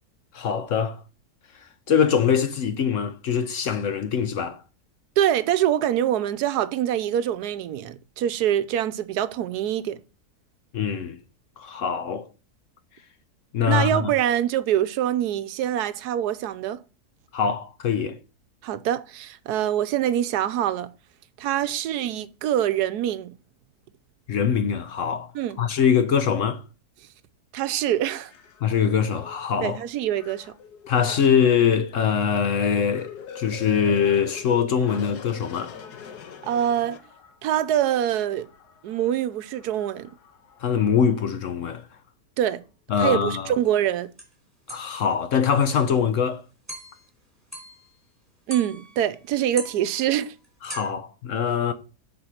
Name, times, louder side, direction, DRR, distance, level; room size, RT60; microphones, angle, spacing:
voice 1, 0.3-1.0 1.6-4.6 10.7-11.2 11.6-12.3 13.5-14.1 17.3-18.2 24.3-25.3 25.6-26.6 28.6-29.8 30.9-35.8 40.6-41.9 42.9-43.6 44.7-46.4 50.6-51.7, left 7 dB, 60° left, 0.9 m, -23 dB
voice 2, 5.2-10.0 13.6-16.8 18.6-20.9 21.4-23.4 25.3-25.6 27.5-28.3 29.6-30.5 36.4-37.0 37.4-38.5 38.8-40.1 42.4-42.6 43.0-44.1 48.5-50.3, right 11 dB, 85° right, 1.2 m, -24 dB
sound 1, 27.6-37.6 38.1-41.2 41.8-41.9, left 6 dB, 90° left, 1.5 m, -44 dB
sound 2, 43.6-43.7 44.2-44.3 44.7-45.0 45.5-45.6 46.0-46.2 46.7-47.1 47.5-48.0 48.5-49.2 49.5-50.9, right 1 dB, 10° right, 2.9 m, -40 dB
7.9 x 4.6 x 5.6 m
omnidirectional pair, 1.7 m